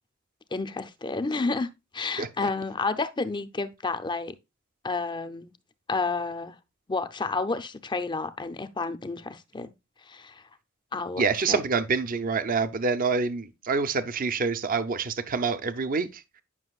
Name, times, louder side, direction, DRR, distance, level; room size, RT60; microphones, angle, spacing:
voice 1, 0.5-4.3 4.8-5.5 5.9-6.6 6.9-9.7 10.1-10.4 10.9-11.2 11.5-11.6, left 3 dB, 20° left, 0.5 m, -30 dB
voice 2, 2.2-2.5 11.2-16.4, right 4 dB, 40° right, 0.6 m, -27 dB
9.7 x 5.8 x 2.3 m
head